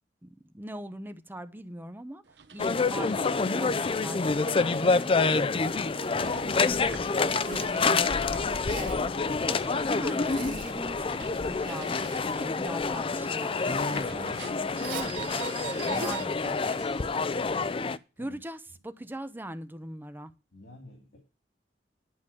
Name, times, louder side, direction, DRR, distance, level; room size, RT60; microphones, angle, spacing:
voice 1, 0.2-2.2 2.5-3.7 4.0-5.5 5.8-6.4 6.8-9.1 9.5-11.9 12.3-16.8 18.2-20.3, right 1 dB, 10° right, 0.8 m, -42 dB
sound 1, 2.3-17.6, right 7 dB, 75° right, 1.0 m, -46 dB
sound 2, 2.6-18.0, left 4 dB, 30° left, 0.5 m, -27 dB
Zipper (clothing), 7.3-7.8 8.5-9.0 10.0-10.8 11.4-12.4 13.5-14.0 14.7-15.2 15.7-16.2, right 3 dB, 55° right, 2.7 m, -43 dB
voice 2, 14.1-14.4 18.2-18.4 20.5-21.2, left 1 dB, 85° left, 2.8 m, -49 dB
11.0 x 5.1 x 8.5 m
head